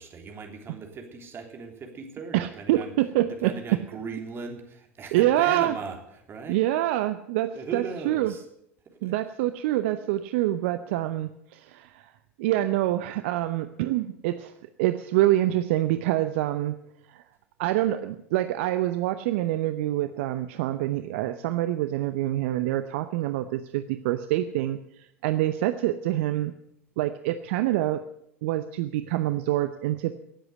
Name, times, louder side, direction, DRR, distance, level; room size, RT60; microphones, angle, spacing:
voice 1, 0.0-2.9 3.4-6.6 7.5-8.4 8.8-9.1, right 5 dB, 30° right, 3 dB, 3.4 m, -38 dB
voice 2, 2.3-3.5 5.1-5.7 6.5-8.3 9.0-12.1 12.4-14.5 14.8-16.8 17.1-17.2 17.6-26.5 27.0-28.1 28.4-30.1, right 14 dB, 60° right, 10 dB, 0.7 m, -26 dB
17.5 x 8.0 x 8.2 m, 0.75 s
figure-of-eight pair, 80°, 7 cm